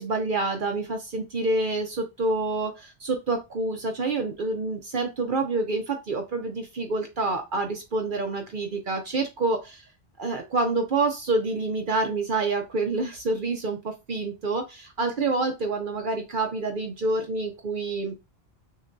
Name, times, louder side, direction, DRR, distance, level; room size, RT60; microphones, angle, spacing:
voice 1, 0.0-9.8 10.2-18.1, right 3 dB, 50° right, 4 dB, 0.8 m, -27 dB
6.5 x 2.2 x 2.6 m, 0.23 s
omnidirectional pair, 1.2 m